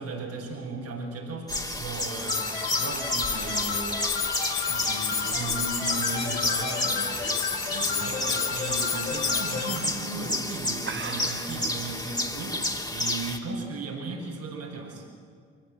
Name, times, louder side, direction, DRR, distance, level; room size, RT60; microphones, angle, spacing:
voice 1, 0.0-4.0 4.4-7.3 7.7-15.0, right 3 dB, 75° right, -4 dB, 6.1 m, -36 dB
sound 1, 1.5-13.4, left 1 dB, 10° left, 2.9 m, -31 dB
sound 2, 2.3-9.8, left 7 dB, 85° left, 2.3 m, -31 dB
sound 3, 4.7-7.8 8.2-8.5 8.9-9.0 9.8-10.1 10.4-10.5 10.8-11.8, right 5 dB, 35° right, 1.2 m, -40 dB
24.0 x 19.5 x 9.2 m, 2.1 s
hypercardioid pair, 45°, 33 cm